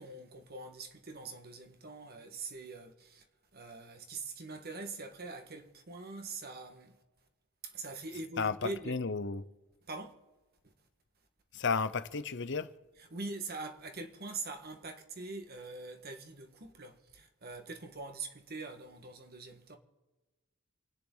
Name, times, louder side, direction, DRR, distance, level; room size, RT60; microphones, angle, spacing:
voice 1, 0.0-3.2 3.5-7.0 7.6-8.9 9.9-10.1 13.1-19.8, right 3 dB, 45° right, 1.7 m, -43 dB
voice 2, 8.4-9.5 11.5-12.7, left 4 dB, 55° left, 0.9 m, -33 dB
28.5 x 10.0 x 4.0 m
head